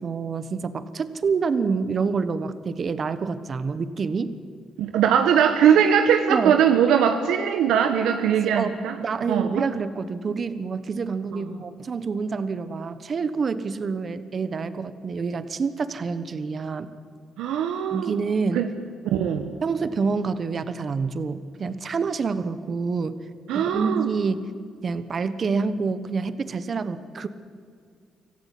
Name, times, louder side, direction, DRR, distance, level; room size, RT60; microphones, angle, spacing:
voice 1, 0.0-4.3 6.3-6.5 8.4-16.9 17.9-18.7 19.6-23.2 23.5-24.4 24.8-27.3, right 5 dB, 45° right, 13 dB, 1.2 m, -27 dB
voice 2, 4.8-9.0 9.3-9.7 17.4-18.1 18.5-18.7 19.1-19.5 23.5-24.1, right 8 dB, 90° right, 6 dB, 1.2 m, -20 dB
25.5 x 15.0 x 9.3 m, 2.1 s
cardioid pair, 90°, 0 cm